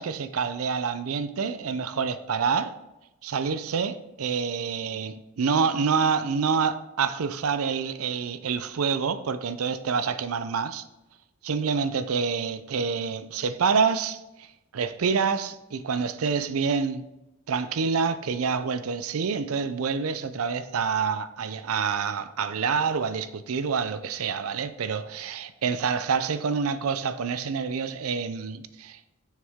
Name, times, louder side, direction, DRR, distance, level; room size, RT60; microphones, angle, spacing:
voice 1, 0.0-2.8 3.2-10.8 11.4-14.5 14.7-17.1 17.5-29.0, right 5 dB, 85° right, 0.5 m, -27 dB
6.6 x 6.3 x 3.5 m
head